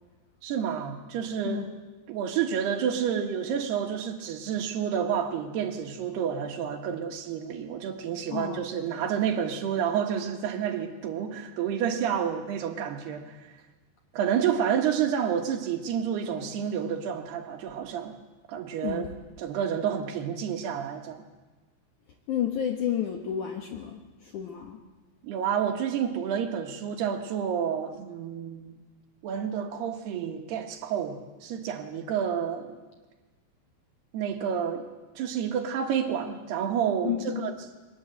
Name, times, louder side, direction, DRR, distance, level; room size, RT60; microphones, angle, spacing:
voice 1, 0.4-1.7 2.1-13.5 14.1-18.2 18.5-19.1 19.4-21.2 25.2-28.8 29.2-32.8 34.1-34.9 35.2-37.5, right 8 dB, 70° right, 5 dB, 3.3 m, -29 dB
voice 2, 1.4-1.8 8.3-8.7 18.8-19.1 22.3-24.8 37.0-37.5, left 9 dB, 65° left, 3 dB, 2.0 m, -31 dB
23.0 x 19.5 x 7.9 m, 1.2 s
omnidirectional pair, 5.2 m